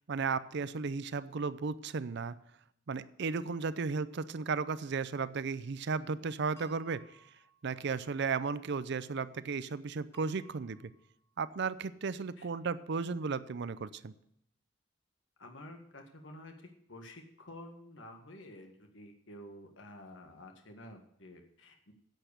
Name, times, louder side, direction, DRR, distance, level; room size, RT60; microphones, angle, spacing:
voice 1, 0.1-2.4 2.9-7.0 7.6-10.8 11.4-14.1, right 5 dB, 60° right, 16 dB, 0.5 m, -35 dB
sound 1, 3.6-4.1 6.6-8.2 10.1-11.3, left 1 dB, 15° left, 4.7 m, -61 dB
voice 2, 15.4-21.9, left 1 dB, 70° left, 4 dB, 1.8 m, -50 dB
10.5 x 7.9 x 6.6 m, 0.75 s
head